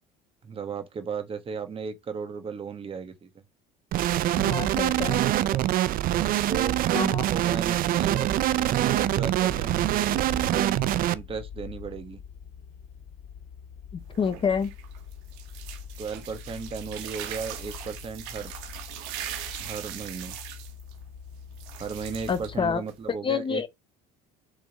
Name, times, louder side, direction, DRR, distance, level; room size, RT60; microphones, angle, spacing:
voice 1, 0.4-3.3 5.3-5.7 6.1-6.8 7.1-10.2 11.1-12.2 16.0-18.5 19.6-20.4 21.8-23.7, right 5 dB, 30° right, 1.5 m, -36 dB
sound 1, 3.9-11.1, right 13 dB, 50° right, 0.5 m, -24 dB
voice 2, 4.4-5.2 6.9-7.3 14.2-14.7 22.3-22.8 23.2-23.7, left 6 dB, 30° left, 0.8 m, -27 dB
sound 2, 8.9-22.8, left 8 dB, 75° left, 2.5 m, -44 dB
sound 3, 14.0-23.1, right 11 dB, 85° right, 1.3 m, -41 dB
6.4 x 3.6 x 4.1 m
cardioid pair, 115°, 18 cm